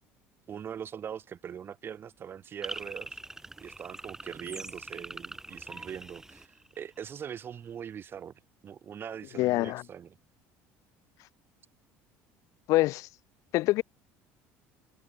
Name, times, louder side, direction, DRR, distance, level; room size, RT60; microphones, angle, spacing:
voice 1, 0.5-3.2 3.6-8.3 8.6-10.1, right 8 dB, 40° right, 3.6 m, -42 dB
sound 1, 2.6-7.1, right 2 dB, 10° right, 2.5 m, -43 dB
voice 2, 9.4-9.8 12.7-13.1 13.5-13.8, left 18 dB, 70° left, 1.0 m, -25 dB
supercardioid pair, 105°, 6 cm